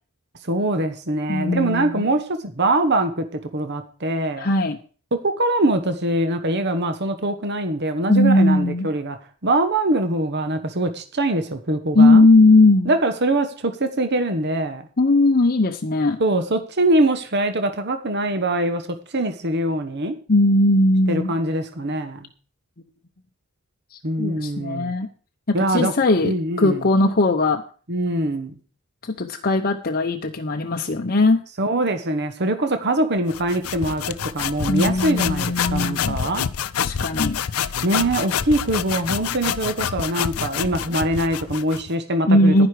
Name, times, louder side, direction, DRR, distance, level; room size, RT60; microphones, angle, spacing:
voice 1, 0.4-4.5 5.1-9.2 9.4-12.3 12.8-14.8 16.2-18.8 19.1-20.2 21.1-22.3 24.0-24.9 25.5-25.9 26.2-26.8 27.9-28.5 31.6-36.4 37.8-42.7, right 1 dB, 50° right, 9 dB, 1.1 m, -23 dB
voice 2, 1.3-2.1 4.4-4.8 8.1-8.9 11.9-12.9 15.0-16.2 20.3-21.3 23.9-25.1 25.5-27.6 29.0-31.4 34.7-36.2 36.8-37.4 42.3-42.7, left 2 dB, 40° left, 4 dB, 0.8 m, -18 dB
sound 1, 33.3-41.9, left 8 dB, 75° left, 0.6 m, -27 dB
10.5 x 10.5 x 4.9 m, 0.39 s
head